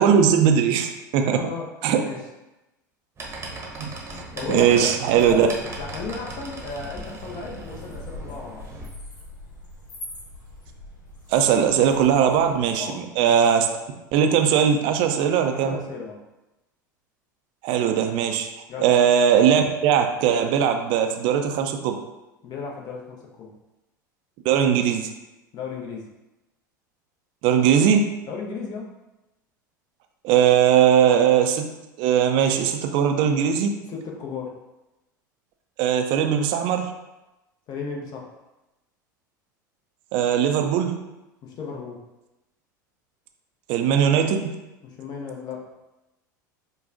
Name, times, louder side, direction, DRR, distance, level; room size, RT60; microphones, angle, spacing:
voice 1, 0.0-1.4 1.8-2.1 4.1-4.2 4.5-5.5 11.3-13.7 14.1-15.8 17.6-18.5 18.8-22.0 24.4-25.1 27.4-28.1 30.2-31.7 32.0-33.7 35.8-36.9 40.1-41.0 43.7-44.5, right 8 dB, 55° right, 5 dB, 0.5 m, -19 dB
voice 2, 1.2-2.2 4.1-4.9 5.3-8.6 12.8-13.3 15.5-16.2 18.7-18.9 22.4-23.5 25.5-26.1 28.3-28.9 33.9-34.5 37.7-38.2 41.4-42.0 44.8-45.6, left 5 dB, 40° left, -1 dB, 0.8 m, -34 dB
sound 1, 3.2-8.9, right 2 dB, 25° right, 0.9 m, -38 dB
sound 2, 5.2-12.7, left 1 dB, 75° left, 1.3 m, -43 dB
5.1 x 2.3 x 2.5 m, 0.99 s
hypercardioid pair, 80°, 10 cm